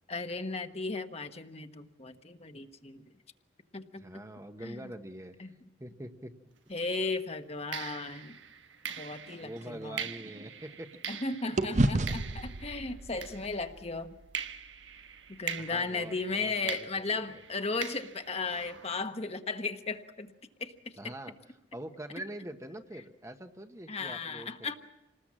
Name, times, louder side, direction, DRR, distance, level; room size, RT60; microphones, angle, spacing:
voice 1, 0.1-3.1 3.7-4.0 4.6-4.9 5.4-5.5 6.7-8.4 9.0-10.0 11.1-14.1 15.4-20.3 20.6-21.1 23.9-24.8, left 3 dB, 35° left, 7 dB, 1.2 m, -36 dB
voice 2, 4.0-5.5 5.8-6.3 9.4-10.9 15.6-17.4 21.0-21.3 21.7-24.8, right 1 dB, 15° right, 7 dB, 1.1 m, -44 dB
sound 1, 6.6-6.8 7.7-13.9 14.3-19.1, right 7 dB, 85° right, 1.2 m, -43 dB
sound 2, 8.9-11.2 11.6-15.8, right 1 dB, 40° right, 0.8 m, -34 dB
27.5 x 20.0 x 7.5 m, 0.93 s
head